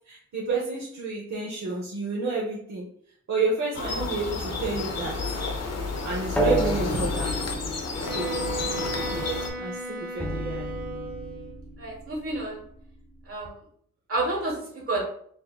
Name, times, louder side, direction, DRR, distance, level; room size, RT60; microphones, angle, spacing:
voice 1, 0.1-2.9 3.3-5.2 6.0-7.4 8.0-8.5 9.1-10.7, right 3 dB, 60° right, -4 dB, 0.8 m, -30 dB
sound 1, 3.7-9.5, left 3 dB, 55° left, 0.7 m, -31 dB
sound 2, 4.9-9.6 10.2-13.5, equal, 5° left, 0.4 m, -34 dB
Wind instrument woodwind instrument, 8.0-11.6, right 2 dB, 30° right, 0.7 m, -35 dB
voice 2, 11.8-12.6 13.2-13.6 14.1-15.0, right 2 dB, 45° right, -1 dB, 1.4 m, -30 dB
6.2 x 2.7 x 2.3 m, 0.62 s
wide cardioid pair, 165°, 31 cm